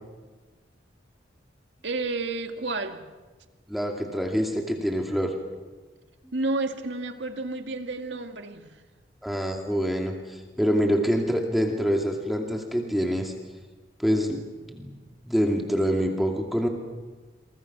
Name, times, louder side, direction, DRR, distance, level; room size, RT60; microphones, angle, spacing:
voice 1, 1.8-3.1 6.3-8.8, right 2 dB, 80° right, 6 dB, 2.0 m, -31 dB
voice 2, 3.7-5.3 9.2-13.3 14.0-14.4 14.7-15.0 15.2-16.7, equal, ahead, 1 dB, 2.4 m, -26 dB
28.5 x 24.0 x 6.1 m, 1.3 s
head